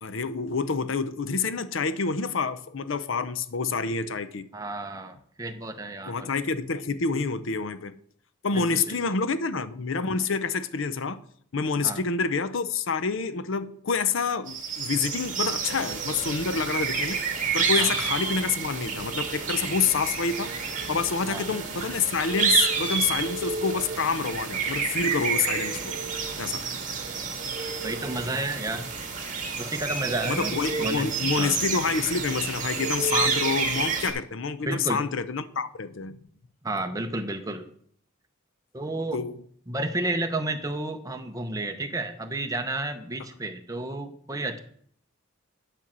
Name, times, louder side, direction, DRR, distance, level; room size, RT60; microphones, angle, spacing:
voice 1, 0.0-4.5 6.0-7.9 8.4-11.2 11.5-20.5 20.9-25.9 26.4-26.6 30.2-36.2 39.1-39.4, left 5 dB, 65° left, 0.6 m, -28 dB
voice 2, 4.5-6.3 8.5-9.2 11.8-12.0 17.8-17.9 21.3-21.5 27.8-28.9 29.6-31.1 31.4-31.6 34.6-35.0 36.6-37.7 38.7-39.2 39.7-44.6, right 2 dB, 15° right, 0.8 m, -31 dB
sound 1, 14.5-34.1, right 5 dB, 40° right, 1.6 m, -29 dB
9.9 x 4.4 x 7.4 m
head